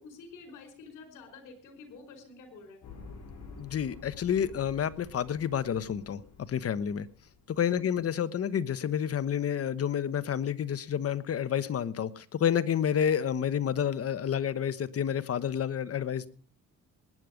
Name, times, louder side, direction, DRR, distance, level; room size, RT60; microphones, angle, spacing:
voice 1, 0.0-2.8 7.7-7.8, left 4 dB, 90° left, 7 dB, 5.0 m, -49 dB
sound 1, 2.8-7.6, left 4 dB, 65° left, 6.8 m, -49 dB
voice 2, 3.6-7.1 7.5-16.3, left 8 dB, 50° left, 14 dB, 1.1 m, -29 dB
19.5 x 9.6 x 5.1 m, 0.40 s
cardioid pair, 90°, 30 cm